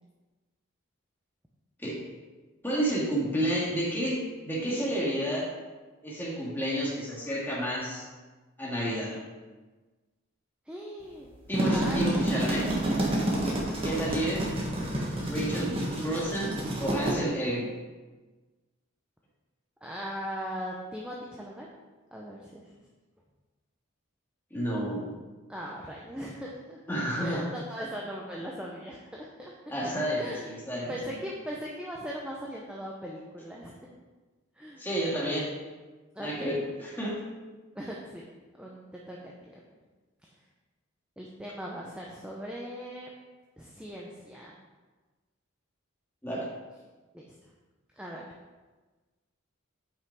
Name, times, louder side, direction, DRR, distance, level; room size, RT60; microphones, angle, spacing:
voice 1, 2.6-5.5 6.0-8.1 8.6-9.2 11.5-12.7 13.8-14.5 15.3-17.7 24.5-25.2 26.9-27.5 29.7-31.0 34.8-35.5 36.2-37.2 46.2-46.5, right 1 dB, 10° left, -6 dB, 2.1 m, -30 dB
voice 2, 10.7-11.3 11.7-12.1 19.8-21.7 22.1-22.7 25.5-26.8 27.2-29.5 30.1-30.5 30.9-33.7 34.6-34.9 36.1-36.6 37.7-38.3 38.6-39.6 40.2-40.3 41.2-43.1 43.6-44.5 47.1-47.3 48.0-48.2, equal, 5° right, -3 dB, 0.7 m, -39 dB
sound 1, 11.3-17.1, right 1 dB, 25° right, 1.5 m, -29 dB
8.5 x 5.7 x 4.7 m, 1.3 s
head